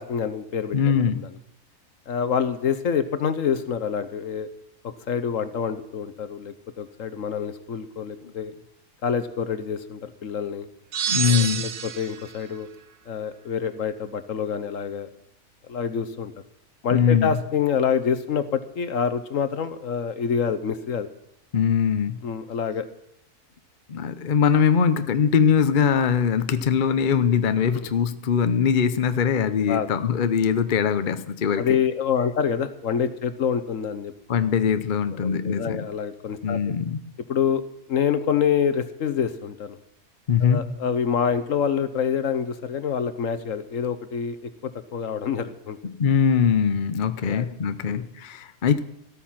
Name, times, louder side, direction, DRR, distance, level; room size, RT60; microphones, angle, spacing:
voice 1, 0.0-1.4 2.1-4.5 5.1-8.5 9.0-10.7 11.2-12.7 13.1-15.1 15.7-16.3 16.8-21.1 22.2-22.8 27.7-27.9 29.7-29.9 31.6-34.1 35.1-36.8 37.3-37.6 37.9-39.8 40.4-45.8 47.2-47.5 47.8-48.1, left 7 dB, 60° left, 11 dB, 1.3 m, -26 dB
voice 2, 0.7-1.2 11.1-11.7 16.9-17.3 21.5-22.2 23.9-31.8 34.3-35.9 36.4-37.0 40.3-40.6 45.8-48.8, left 7 dB, 45° left, 11 dB, 0.7 m, -22 dB
sound 1, 10.9-12.3, right 8 dB, 80° right, 1.4 m, -27 dB
14.0 x 13.0 x 5.9 m, 0.74 s
omnidirectional pair, 1.6 m